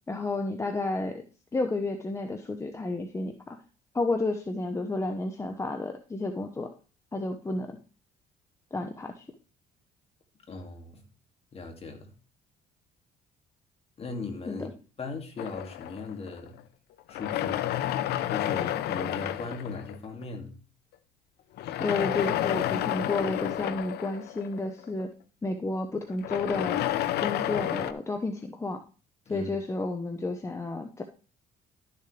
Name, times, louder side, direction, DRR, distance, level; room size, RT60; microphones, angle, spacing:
voice 1, 0.1-1.2 1.5-3.6 3.9-6.7 7.1-7.8 8.7-9.2 14.5-14.7 21.8-25.1 25.4-26.8 27.2-28.8 29.3-31.0, left 2 dB, 15° left, 5 dB, 0.9 m, -31 dB
voice 2, 10.5-11.1 11.5-12.1 14.0-14.7 15.0-16.6 17.1-17.7 18.3-20.6 29.3-29.5, left 3 dB, 35° left, 4 dB, 2.3 m, -38 dB
sound 1, 15.4-16.6 17.1-20.2 21.6-25.0 26.1-27.9, left 12 dB, 75° left, 0.7 m, -30 dB
12.0 x 6.9 x 3.3 m, 0.37 s
cardioid pair, 110°, 17 cm